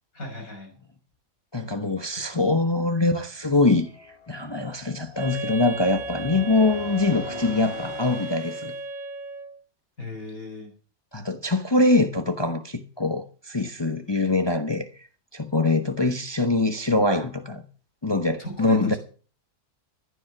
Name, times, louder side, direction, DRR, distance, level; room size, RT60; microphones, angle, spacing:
voice 1, 0.1-0.7 2.3-2.6 10.0-10.7 18.4-19.0, left 1 dB, 70° left, 6.5 m, -37 dB
voice 2, 1.5-8.7 11.1-14.9 15.3-17.6 18.0-19.0, left 2 dB, 20° left, 1.1 m, -23 dB
sound 1, 3.4-8.8, left 4 dB, 45° left, 1.7 m, -43 dB
Wind instrument woodwind instrument, 5.1-9.6, right 3 dB, 60° right, 1.7 m, -35 dB
15.5 x 10.0 x 6.1 m
omnidirectional pair, 1.5 m